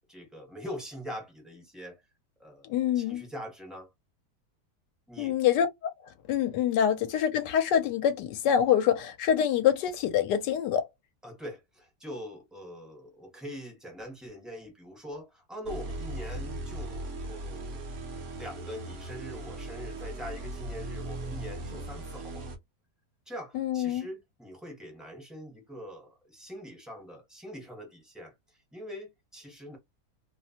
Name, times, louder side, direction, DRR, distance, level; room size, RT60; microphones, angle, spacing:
voice 1, 0.1-2.0 2.4-3.9 5.1-5.4 11.2-17.8 18.3-22.5 23.3-28.3 28.7-29.8, equal, ahead, 0.5 m, -43 dB
voice 2, 2.6-3.2 5.2-5.7 6.3-10.9 23.5-24.1, left 9 dB, 80° left, 1.2 m, -25 dB
sound 1, 15.7-22.6, right 2 dB, 60° right, 0.8 m, -38 dB
2.9 x 2.1 x 2.6 m
omnidirectional pair, 1.8 m